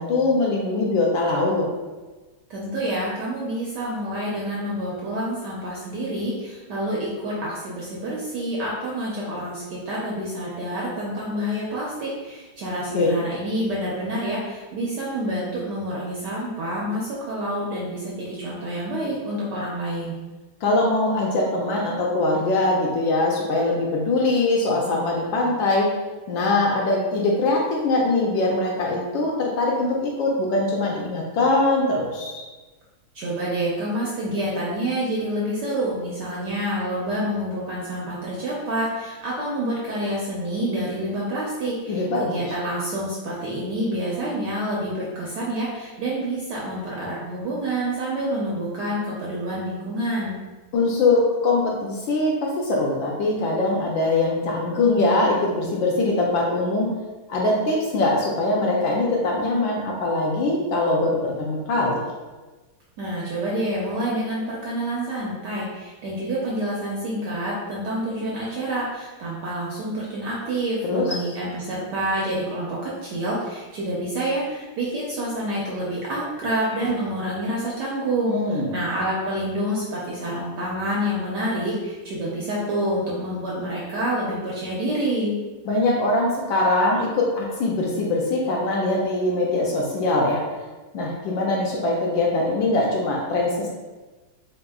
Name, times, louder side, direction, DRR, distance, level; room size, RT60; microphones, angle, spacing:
voice 1, 0.0-1.7 12.9-13.1 20.6-25.9 26.3-32.4 41.9-42.4 50.7-56.9 57.3-62.0 70.8-71.1 78.3-78.8 85.6-90.4 90.9-93.7, left 2 dB, 75° left, -2 dB, 1.2 m, -22 dB
voice 2, 2.5-20.2 33.1-50.4 63.0-85.3, right 1 dB, 70° right, -5 dB, 1.0 m, -28 dB
3.8 x 3.5 x 2.3 m, 1.2 s
omnidirectional pair, 2.4 m